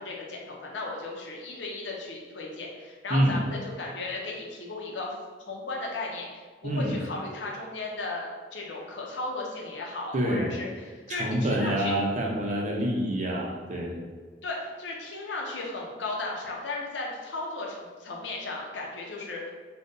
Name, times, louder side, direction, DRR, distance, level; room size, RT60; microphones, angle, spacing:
voice 1, 0.0-5.1 5.5-11.9 14.4-19.5, left 2 dB, 90° left, -2 dB, 0.6 m, -35 dB
voice 2, 3.1-3.4 6.6-7.0 10.1-10.5 11.1-14.0, equal, 45° right, -2 dB, 0.6 m, -27 dB
3.6 x 2.2 x 2.6 m, 1.5 s
head